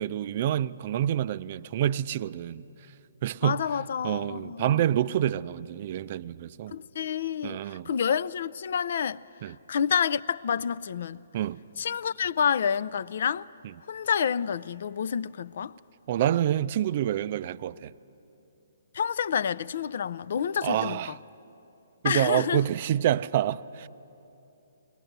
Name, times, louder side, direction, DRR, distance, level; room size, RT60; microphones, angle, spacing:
voice 1, 0.0-2.6 3.2-3.6 4.0-6.7 7.4-7.9 9.4-9.6 11.3-11.6 16.1-17.9 20.6-21.2 22.0-23.9, right 11 dB, 45° right, 0.4 m, -27 dB
voice 2, 3.4-4.9 6.7-11.3 11.8-13.5 13.9-15.8 18.9-21.2 22.0-22.6, left 7 dB, 60° left, 0.4 m, -29 dB
21.0 x 19.0 x 8.0 m
hypercardioid pair, 145°, 0 cm